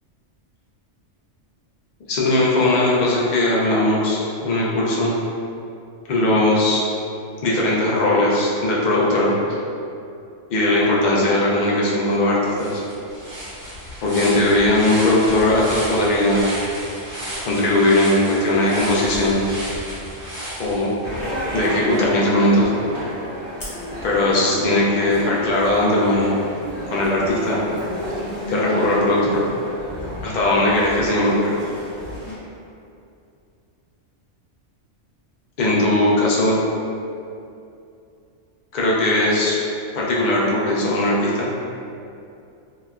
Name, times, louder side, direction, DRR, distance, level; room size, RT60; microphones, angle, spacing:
voice 1, 2.1-5.1 6.1-6.8 7.4-9.3 10.5-12.8 14.0-16.5 17.4-19.5 20.6-20.9 21.5-22.7 24.0-26.4 26.9-27.6 28.5-29.4 30.2-31.6 35.6-36.6 38.7-39.6 39.9-41.5, left 1 dB, 65° left, -5 dB, 0.4 m, -19 dB
sound 1, 12.1-12.2 12.5-21.3, equal, 80° right, 1.1 m, -33 dB
sound 2, 21.0-32.3, equal, 25° right, 1.2 m, -31 dB
Fire, 23.6-24.7, left 1 dB, 45° left, 0.8 m, -39 dB
2.9 x 2.2 x 2.3 m, 2.6 s
omnidirectional pair, 1.3 m